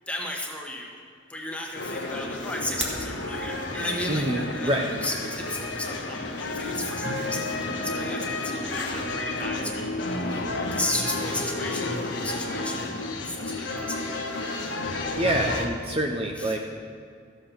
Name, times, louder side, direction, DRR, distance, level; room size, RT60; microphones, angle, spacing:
voice 1, 0.1-1.0 1.3-10.4 10.7-14.6 16.4-16.6, left 1 dB, 5° left, 0 dB, 1.3 m, -35 dB
sound 1, 1.7-15.7, left 2 dB, 70° left, 1.3 m, -31 dB
sound 2, 2.5-3.1, right 3 dB, 70° right, 1.8 m, -33 dB
voice 2, 4.1-4.9 15.2-16.6, right 1 dB, 30° right, 2 dB, 0.8 m, -26 dB
14.0 x 8.0 x 5.8 m, 2.3 s
head